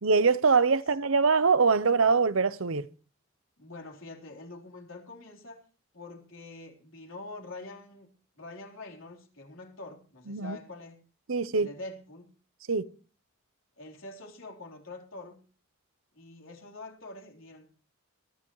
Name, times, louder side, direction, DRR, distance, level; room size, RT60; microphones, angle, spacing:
voice 1, 0.0-2.9 10.3-10.6 11.3-11.7 12.7-12.9, right 4 dB, 80° right, 0.8 m, -23 dB
voice 2, 3.6-5.6 5.9-8.1 8.4-11.0 11.5-12.3 13.8-15.4 16.1-17.7, left 2 dB, 75° left, 3.8 m, -45 dB
22.5 x 12.5 x 3.1 m
head